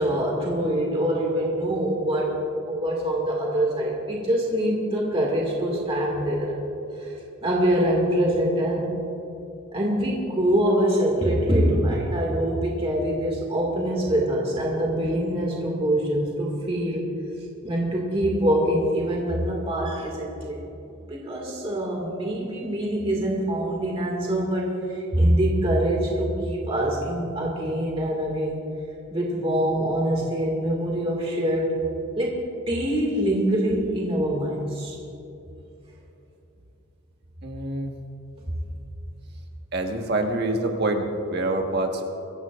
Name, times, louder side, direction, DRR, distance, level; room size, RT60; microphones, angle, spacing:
voice 1, 0.0-6.5 7.0-7.1 7.4-8.9 9.7-17.1 17.6-20.6 21.1-28.6 29.1-31.8 32.2-35.0, right 1 dB, 30° right, -3 dB, 2.1 m, -24 dB
voice 2, 37.4-37.9 39.7-42.1, right 2 dB, 50° right, 3 dB, 1.4 m, -26 dB
25.0 x 14.5 x 2.5 m, 2.9 s
head